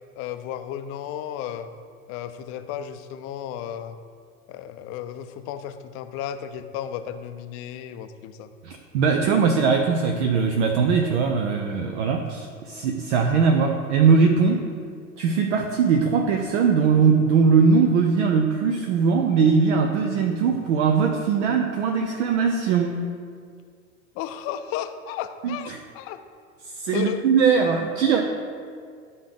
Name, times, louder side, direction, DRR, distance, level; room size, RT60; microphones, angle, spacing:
voice 1, 0.2-1.7 2.1-4.0 4.5-8.5 24.1-26.2 26.9-27.2, left 10 dB, 35° left, 10 dB, 0.5 m, -34 dB
voice 2, 8.6-14.7 15.2-23.0 25.4-25.8 26.6-28.2, right 5 dB, 60° right, 4 dB, 0.7 m, -20 dB
11.0 x 3.9 x 3.8 m, 2.1 s
figure-of-eight pair, 85°, 41 cm